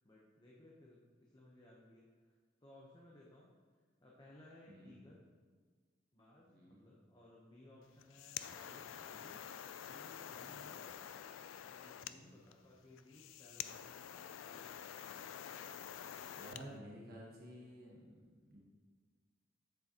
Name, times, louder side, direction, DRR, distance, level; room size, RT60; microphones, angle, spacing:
voice 1, 0.0-3.5 4.0-5.2 6.1-9.4 9.8-10.9 11.6-14.7, left 1 dB, 20° left, -3 dB, 0.8 m, -61 dB
voice 2, 4.7-5.0 6.5-6.8 8.4-8.6 10.4-10.7 12.0-12.4 16.3-18.6, equal, 50° right, -3 dB, 1.2 m, -54 dB
sound 1, 7.9-16.7, left 9 dB, 85° left, 0.3 m, -48 dB
7.7 x 7.4 x 2.9 m, 1.5 s
head